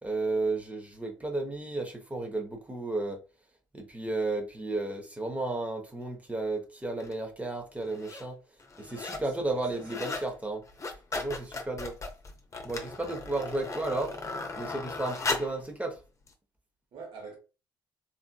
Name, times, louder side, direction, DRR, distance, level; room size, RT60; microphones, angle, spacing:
voice 1, 0.0-3.2 3.7-8.4 8.8-10.6 11.2-11.9 12.6-14.1 14.6-16.0, right 2 dB, 15° right, 0.9 m, -33 dB
sound 1, 7.0-7.1 7.8-8.3 8.6-9.3 9.6-10.3 10.6-15.6 16.3-16.4, left 3 dB, 30° left, 0.7 m, -37 dB
voice 2, 9.0-10.2 16.9-17.4, right 4 dB, 55° right, 1.2 m, -47 dB
3.4 x 2.7 x 2.2 m
figure-of-eight pair, 45°, 11 cm